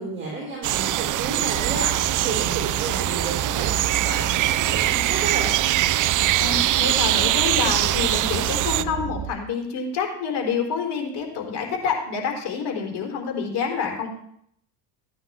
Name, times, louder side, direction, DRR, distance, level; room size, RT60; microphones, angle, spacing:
voice 1, 0.0-5.5, right 3 dB, 25° right, -6 dB, 5.5 m, -32 dB
sound 1, 0.6-8.8, right 14 dB, 40° right, 0.5 m, -22 dB
sound 2, 1.6-9.3, right 8 dB, 60° right, 1.5 m, -33 dB
voice 2, 6.4-14.1, left 6 dB, 55° left, 1 dB, 3.9 m, -27 dB
15.0 x 9.5 x 3.6 m, 0.70 s
supercardioid pair, 85°, 48 cm